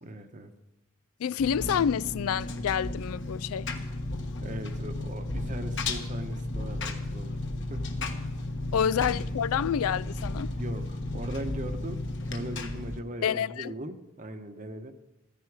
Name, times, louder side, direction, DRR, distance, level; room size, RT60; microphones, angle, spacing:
voice 1, 0.0-0.5 4.4-7.4 7.7-7.9 8.7-8.9 10.6-14.9, right 1 dB, 35° right, 1.0 m, -39 dB
voice 2, 1.2-3.7 8.7-10.5 13.2-13.7, left 8 dB, 75° left, 0.3 m, -28 dB
Engine, 1.4-13.0, left 2 dB, 55° left, 1.3 m, -34 dB
14.0 x 13.0 x 4.8 m
head